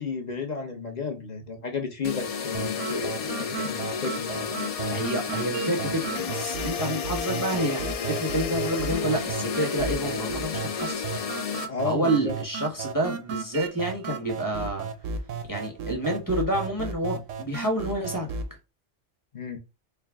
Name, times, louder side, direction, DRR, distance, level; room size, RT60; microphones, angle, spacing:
voice 1, 0.0-4.6 11.7-12.3 19.3-19.6, left 4 dB, 40° left, 0.8 m, -33 dB
sound 1, 2.0-11.7, left 6 dB, 75° left, 0.3 m, -31 dB
sound 2, 2.5-18.5, right 5 dB, 90° right, 1.0 m, -35 dB
voice 2, 4.9-11.2 11.8-14.9 15.5-18.3, right 1 dB, 15° left, 1.2 m, -28 dB
4.6 x 2.2 x 3.5 m
omnidirectional pair, 1.2 m